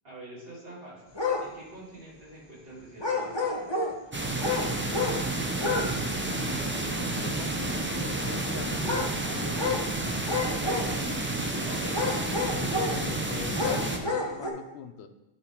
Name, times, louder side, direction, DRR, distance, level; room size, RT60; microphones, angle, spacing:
voice 1, 0.0-1.1 1.4-3.7 10.6-12.4, right 1 dB, 60° right, -7 dB, 2.9 m, -45 dB
sound 1, 1.1-1.5 3.0-4.0 4.4-5.2 5.6-5.9 6.2-6.3 8.8-9.1 9.6-9.9 10.3-11.1 11.8-13.0 13.5-14.5, left 3 dB, 25° left, 0.9 m, -29 dB
sound 2, 4.1-14.0, right 2 dB, 20° right, 0.4 m, -30 dB
voice 2, 7.0-9.7 12.6-15.1, left 7 dB, 80° left, 8 dB, 0.9 m, -41 dB
9.0 x 3.9 x 4.4 m, 0.95 s
omnidirectional pair, 1.1 m